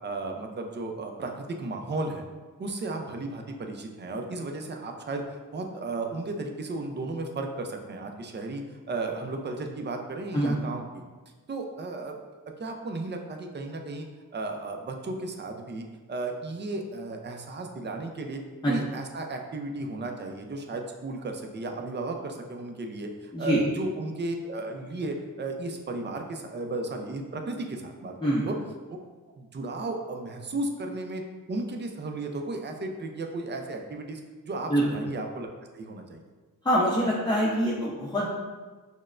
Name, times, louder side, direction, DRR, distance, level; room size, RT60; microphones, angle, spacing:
voice 1, 0.0-2.2 2.6-11.0 11.5-12.2 12.5-14.1 14.3-28.1 28.5-28.6 29.4-31.2 31.5-35.5 35.7-36.2, right 2 dB, 30° right, 3 dB, 0.5 m, -34 dB
voice 2, 36.6-38.3, equal, 15° left, -6 dB, 0.7 m, -24 dB
6.2 x 2.1 x 2.5 m, 1.3 s
cardioid pair, 65°, 35 cm